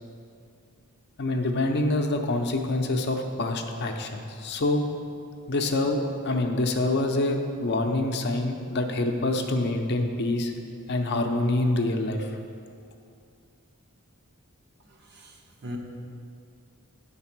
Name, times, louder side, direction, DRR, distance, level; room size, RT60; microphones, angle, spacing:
voice 1, 1.2-4.8 5.5-10.5 10.9-12.4, left 2 dB, 50° left, 4 dB, 0.6 m, -26 dB
voice 2, 14.8-15.8, left 1 dB, 50° right, 0 dB, 0.9 m, -41 dB
8.7 x 4.0 x 5.9 m, 2.4 s
head